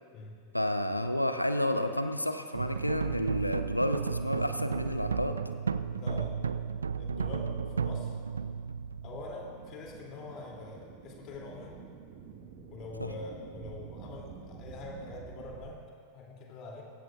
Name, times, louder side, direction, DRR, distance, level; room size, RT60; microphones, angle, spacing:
voice 1, 0.5-5.4 13.0-13.1, left 1 dB, 85° left, 8 dB, 0.7 m, -30 dB
sound 1, 2.5-9.8, right 6 dB, 70° right, 0.4 m, -33 dB
voice 2, 6.0-6.3 7.0-8.2 9.0-11.7 12.7-15.8 16.1-16.8, left 3 dB, 35° left, -1 dB, 2.9 m, -44 dB
sound 2, 8.8-15.8, right 6 dB, 50° right, 1.5 m, -49 dB
19.0 x 16.0 x 2.5 m, 2.1 s
figure-of-eight pair, 90°, 0 cm